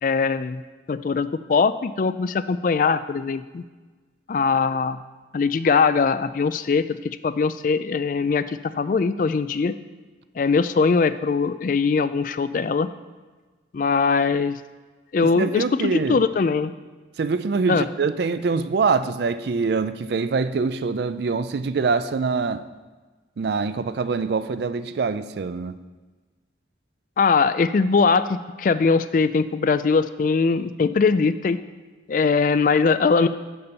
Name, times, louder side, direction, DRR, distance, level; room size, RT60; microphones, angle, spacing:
voice 1, 0.0-0.6 0.9-3.6 4.3-5.0 5.3-9.7 10.4-12.9 13.7-14.6 15.1-16.7 17.7-17.8 27.2-31.6 32.1-33.3, left 4 dB, 45° left, 13 dB, 0.3 m, -21 dB
voice 2, 15.2-16.3 17.2-22.6 23.4-25.8, right 4 dB, 60° right, 13 dB, 0.4 m, -24 dB
6.7 x 5.6 x 6.9 m, 1.3 s
head